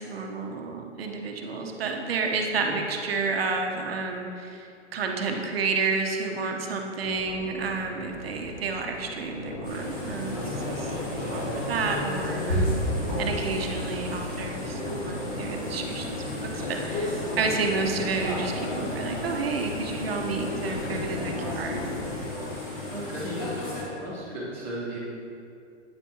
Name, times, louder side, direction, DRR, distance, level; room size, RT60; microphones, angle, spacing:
voice 1, 0.0-10.9 11.3-12.8 13.2-21.8, right 4 dB, 55° right, 2 dB, 0.9 m, -30 dB
Crowd, 7.0-22.2, left 2 dB, 55° left, 1.2 m, -37 dB
sound 1, 9.6-23.8, left 1 dB, 30° left, 1.8 m, -33 dB
voice 2, 22.9-23.3 24.0-25.0, right 1 dB, 10° left, -10 dB, 0.5 m, -35 dB
9.0 x 8.2 x 2.8 m, 2.5 s
hypercardioid pair, 170°, 37 cm